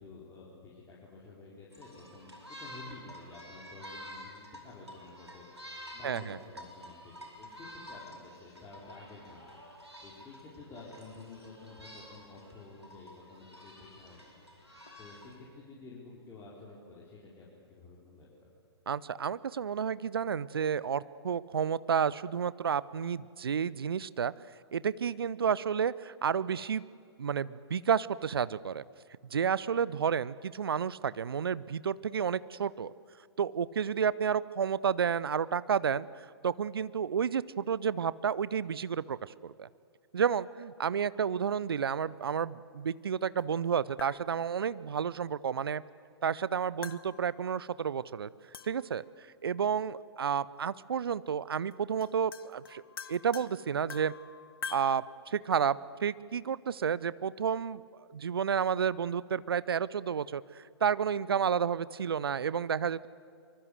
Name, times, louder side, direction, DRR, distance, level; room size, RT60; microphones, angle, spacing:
voice 1, 0.0-14.3 15.0-18.5, left 3 dB, 20° left, -6 dB, 4.6 m, -51 dB
sound 1, 1.7-15.4, equal, 90° right, 4.7 m, -50 dB
voice 2, 6.0-6.4 18.9-24.3 24.7-26.8 27.2-28.8 29.3-32.9 33.4-39.7 40.1-45.8 46.2-48.3 48.7-49.0 49.4-52.8 53.1-54.1 54.7-57.8 58.1-63.1, right 7 dB, 60° right, 19 dB, 0.7 m, -31 dB
sound 2, 43.4-43.5 44.0-44.7 46.8-47.7 48.5-49.1 50.5-50.6 51.7-51.8 52.0-55.0, left 6 dB, 60° left, 1.0 m, -46 dB
24.5 x 24.5 x 8.1 m, 2.2 s
figure-of-eight pair, 115°, 14 cm